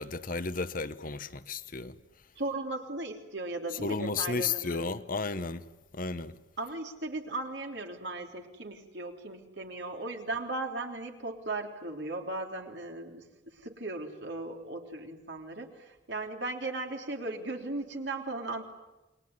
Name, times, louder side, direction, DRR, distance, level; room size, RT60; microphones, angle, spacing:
voice 1, 0.0-1.9 3.7-5.6 5.9-6.3, left 4 dB, 50° left, 1.0 m, -33 dB
voice 2, 2.4-4.8 6.6-13.2 13.6-18.6, right 2 dB, 70° right, 3.4 m, -37 dB
29.0 x 21.5 x 9.6 m
head